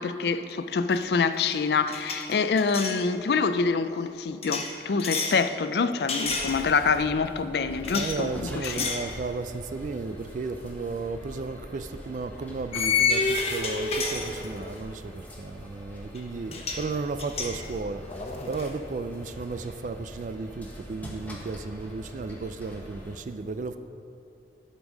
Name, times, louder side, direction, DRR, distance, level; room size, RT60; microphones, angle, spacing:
voice 1, 0.0-8.3 8.6-8.9, left 5 dB, 65° left, 0.4 m, -26 dB
sound 1, 0.9-1.1 1.4-3.0 4.4-5.4 6.1-7.0 7.8-8.2 8.6-9.1 9.5-9.7 11.2-11.4 12.7-14.8 16.1-16.2 16.5-16.9 17.2-18.7, left 4 dB, 35° left, 1.0 m, -30 dB
sound 2, 6.2-23.2, equal, 10° left, 1.2 m, -44 dB
voice 2, 7.9-23.8, right 4 dB, 45° right, 0.3 m, -34 dB
12.0 x 5.3 x 6.2 m
head